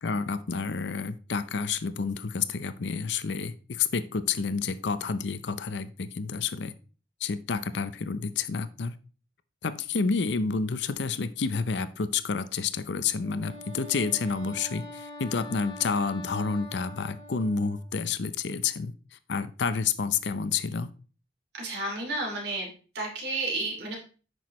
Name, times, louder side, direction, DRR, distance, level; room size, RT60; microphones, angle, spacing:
voice 1, 0.0-6.7 7.2-9.0 9.6-18.9 19.3-20.9, left 5 dB, 80° left, 0.6 m, -29 dB
Wind instrument woodwind instrument, 13.2-17.9, left 1 dB, 20° left, 1.7 m, -44 dB
voice 2, 21.6-22.7 22.9-24.0, right 2 dB, 70° right, 2.7 m, -31 dB
8.8 x 6.2 x 3.1 m
head